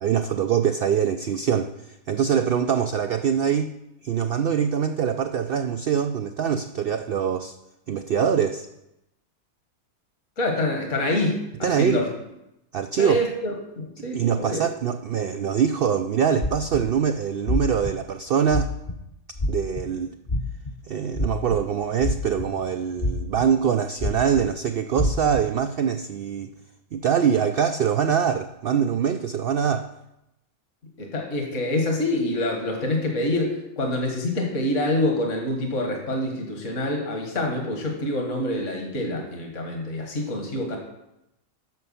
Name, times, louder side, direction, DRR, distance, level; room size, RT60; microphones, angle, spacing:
voice 1, 0.0-1.7 2.1-3.7 4.0-7.5 7.9-8.7 11.6-12.0 12.7-13.2 14.1-18.7 19.5-20.2 20.9-26.5 26.9-29.9, right 7 dB, 85° right, 8 dB, 0.5 m, -23 dB
voice 2, 10.4-12.1 13.0-14.7 31.0-40.8, left 1 dB, 55° left, 1 dB, 1.9 m, -26 dB
sound 1, 16.4-16.9 17.5-17.9 18.5-19.0 19.4-19.8 20.3-20.7 21.1-21.6 22.0-22.6 23.0-23.4 24.0-24.4 25.0-25.4, left 1 dB, 30° left, 0.7 m, -25 dB
10.5 x 6.8 x 5.6 m, 0.88 s
omnidirectional pair, 1.5 m